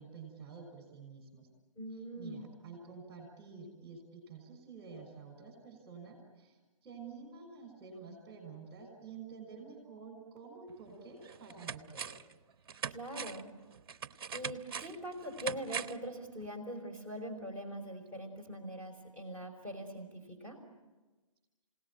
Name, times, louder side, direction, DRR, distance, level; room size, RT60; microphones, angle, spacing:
voice 1, 0.0-1.5 2.2-12.2, right 5 dB, 20° right, 3 dB, 6.0 m, -50 dB
voice 2, 1.8-2.5 12.9-13.5 14.3-20.6, equal, 10° left, -1 dB, 4.7 m, -42 dB
sound 1, 10.7-10.8 11.2-12.3 12.7-16.1 16.4-16.5, right 6 dB, 45° right, 0.8 m, -42 dB
28.5 x 18.0 x 9.1 m, 1.2 s
figure-of-eight pair, 140°, 18 cm